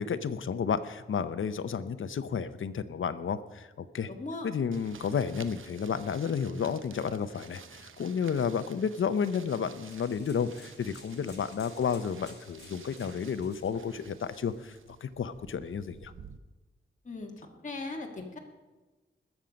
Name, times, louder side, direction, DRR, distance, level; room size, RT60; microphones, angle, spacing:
voice 1, 0.0-4.1 4.4-16.1, left 6 dB, 85° left, 13 dB, 0.7 m, -32 dB
voice 2, 4.1-4.5 17.0-17.3 17.6-18.4, left 3 dB, 40° left, 0 dB, 1.8 m, -38 dB
sound 1, 4.7-16.4, right 6 dB, 85° right, 0.8 m, -52 dB
sound 2, 9.3-14.6, left 5 dB, 60° left, 1.4 m, -56 dB
21.0 x 7.3 x 5.2 m, 1.2 s
wide cardioid pair, 105°, 20 cm